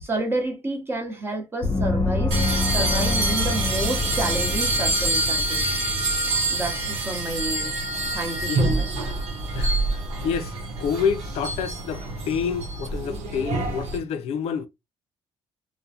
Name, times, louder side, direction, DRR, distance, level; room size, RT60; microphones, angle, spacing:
voice 1, 0.0-5.6 6.5-7.7 8.1-8.9, right 2 dB, 20° right, 0.8 m, -30 dB
Gong, 1.6-6.9, left 3 dB, 30° left, 0.6 m, -27 dB
sound 1, 2.3-14.0, right 2 dB, 80° right, 0.8 m, -26 dB
voice 2, 10.2-14.7, left 7 dB, 75° left, 0.4 m, -28 dB
2.2 x 2.1 x 2.7 m
cardioid pair, 105°, 11 cm